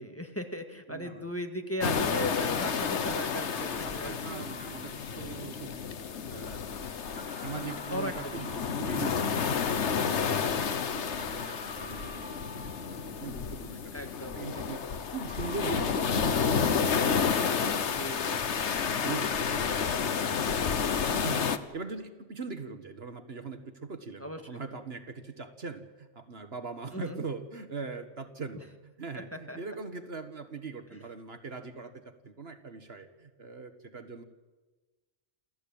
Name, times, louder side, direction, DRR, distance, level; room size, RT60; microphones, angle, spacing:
voice 1, 0.0-4.5 7.9-8.7 13.9-14.5 17.9-18.7 24.2-24.6 26.9-27.2 29.3-29.6, equal, 10° left, 5 dB, 1.9 m, -38 dB
voice 2, 0.9-1.3 3.5-5.8 6.3-12.4 12.6-14.8 15.1-17.6 18.2-18.5 18.8-21.4 21.7-34.2, right 4 dB, 55° right, 9 dB, 1.7 m, -41 dB
sound 1, 1.8-21.6, left 6 dB, 65° left, 1.3 m, -30 dB
sound 2, 4.4-5.5 7.2-9.5 11.2-13.5 15.3-17.6 19.5-20.5, equal, 5° right, 2.8 m, -50 dB
28.0 x 15.5 x 8.7 m, 1.2 s
omnidirectional pair, 1.3 m